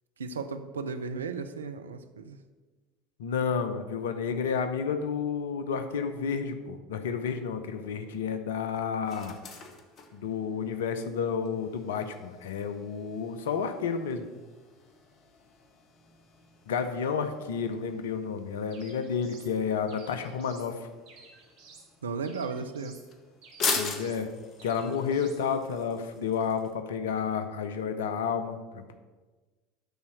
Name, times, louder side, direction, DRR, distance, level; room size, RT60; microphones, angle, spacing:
voice 1, 0.2-2.4 22.0-23.0, right 4 dB, 80° right, 9 dB, 0.5 m, -35 dB
voice 2, 3.2-9.3 10.1-14.3 16.7-20.9 23.7-24.3 24.6-28.9, left 6 dB, 70° left, 9 dB, 0.7 m, -31 dB
sound 1, 7.1-26.7, left 4 dB, 45° left, 1.2 m, -42 dB
sound 2, 18.7-19.5 19.9-20.7 21.1-21.9 22.2-23.1 23.4-24.3 24.6-25.4, right 4 dB, 65° right, 1.7 m, -53 dB
10.5 x 4.3 x 6.2 m, 1.3 s
figure-of-eight pair, 70°, 0 cm